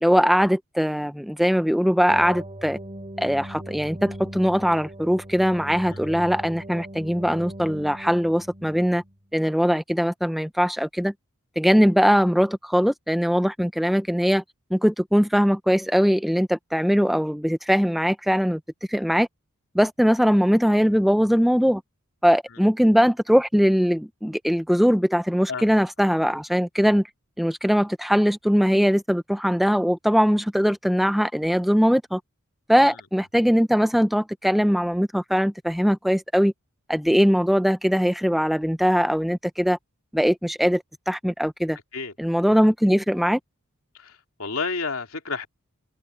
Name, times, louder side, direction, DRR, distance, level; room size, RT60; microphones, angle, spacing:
voice 1, 0.0-2.8 3.2-9.0 9.3-11.1 11.6-14.4 14.7-18.6 18.9-19.3 19.7-21.8 22.2-27.0 27.4-32.2 32.7-36.5 36.9-39.8 40.1-41.8 42.2-43.4, equal, ahead, 0.7 m, -21 dB
sound 1, 2.1-9.1, right 1 dB, 30° right, 3.4 m, -39 dB
voice 2, 43.9-45.5, left 4 dB, 70° left, 3.3 m, -31 dB
head